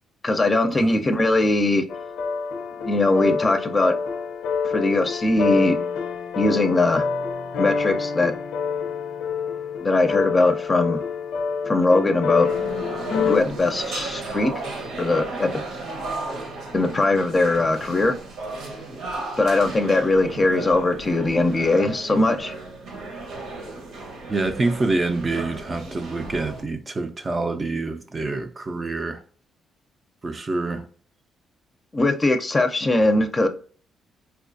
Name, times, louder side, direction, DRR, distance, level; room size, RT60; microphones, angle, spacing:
voice 1, 0.2-1.8 2.8-4.0 4.7-5.8 6.4-7.0 7.6-8.3 9.8-11.0 11.7-12.5 13.1-14.5 15.0-15.6 16.7-18.2 19.4-22.5 31.9-33.5, left 2 dB, 25° left, 0.5 m, -20 dB
sound 1, 1.9-13.4, left 5 dB, 85° left, 0.5 m, -27 dB
sound 2, 12.4-26.6, right 3 dB, 80° right, 1.0 m, -34 dB
voice 2, 24.3-29.2 30.2-30.8, right 3 dB, 30° right, 0.5 m, -26 dB
4.3 x 2.4 x 2.5 m
cardioid pair, 90°, 0 cm